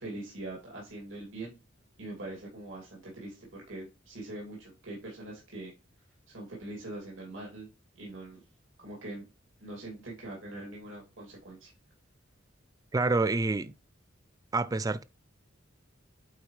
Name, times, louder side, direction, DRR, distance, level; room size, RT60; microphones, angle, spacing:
voice 1, 0.0-1.6 2.0-5.7 6.3-7.7 8.0-8.4 8.8-9.2 9.6-11.7, right 2 dB, 85° right, 2.5 m, -42 dB
voice 2, 12.9-13.7 14.5-15.0, right 3 dB, 20° right, 0.4 m, -27 dB
8.4 x 4.4 x 3.2 m
head